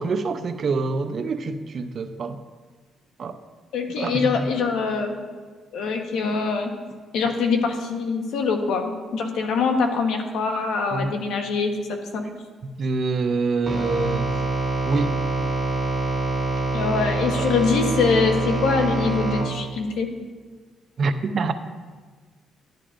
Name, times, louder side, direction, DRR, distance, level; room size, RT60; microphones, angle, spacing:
voice 1, 0.0-2.4 3.2-3.4 4.0-4.5 10.9-11.1 12.8-14.3 14.9-15.1 17.3-17.5 21.0-21.5, right 4 dB, 50° right, 8 dB, 0.6 m, -26 dB
voice 2, 3.7-5.2 5.7-6.7 7.1-12.2 16.7-20.1, left 4 dB, 80° left, 4 dB, 1.1 m, -24 dB
sound 1, 13.7-19.4, right 2 dB, ahead, 3.0 m, -25 dB
11.0 x 10.5 x 2.6 m, 1.5 s
cardioid pair, 90°, 0 cm